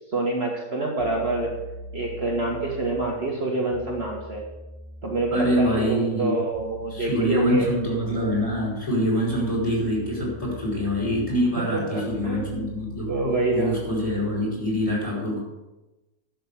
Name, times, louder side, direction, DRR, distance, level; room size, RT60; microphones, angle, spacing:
voice 1, 0.1-1.5 1.9-4.4 5.0-7.7 11.7-12.7 13.1-13.8, right 2 dB, 40° right, -2 dB, 1.6 m, -26 dB
sound 1, 1.0-14.8, left 1 dB, 65° left, 3.7 m, -42 dB
voice 2, 5.3-6.4 6.9-13.1 13.5-15.4, equal, 20° left, -4 dB, 5.1 m, -25 dB
11.0 x 6.8 x 7.3 m, 1.1 s
omnidirectional pair, 1.7 m